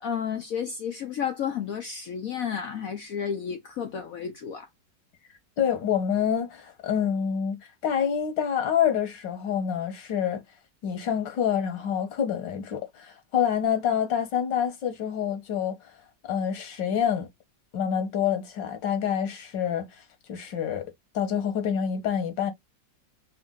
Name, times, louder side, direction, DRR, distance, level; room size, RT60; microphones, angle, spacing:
voice 1, 0.0-4.7, left 7 dB, 60° left, 1.0 m, -32 dB
voice 2, 5.6-10.4 10.8-15.8 16.2-17.3 17.7-19.9 20.3-20.9 21.1-22.5, left 8 dB, 90° left, 1.8 m, -27 dB
4.4 x 2.1 x 3.6 m
omnidirectional pair, 1.9 m